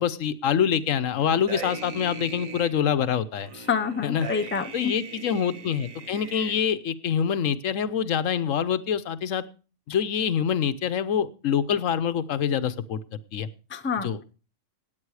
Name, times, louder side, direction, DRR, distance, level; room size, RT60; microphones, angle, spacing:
voice 1, 0.0-3.5 4.0-4.3 4.7-9.4 9.9-13.0 13.3-13.5 14.0-14.2, left 8 dB, 75° left, 13 dB, 1.2 m, -25 dB
sound 1, 1.2-2.7 3.4-6.5, right 4 dB, 85° right, 1.9 m, -39 dB
voice 2, 3.5-4.9 13.7-14.1, left 6 dB, 15° left, 8 dB, 0.5 m, -27 dB
16.5 x 9.1 x 4.8 m, 0.36 s
omnidirectional pair, 1.4 m